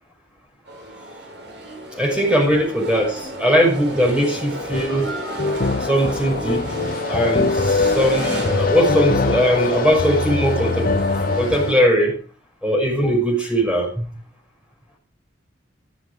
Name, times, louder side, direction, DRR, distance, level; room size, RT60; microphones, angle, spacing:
sound 1, 0.7-11.8, right 1 dB, 65° right, 4.5 m, -31 dB
voice 1, 1.9-5.1 5.8-6.8 7.1-10.9 11.3-12.2 12.6-14.1, equal, 5° right, 0 dB, 5.7 m, -20 dB
sound 2, 4.7-11.7, left 3 dB, 50° left, 0.7 m, -23 dB
13.0 x 12.0 x 4.9 m, 0.39 s
head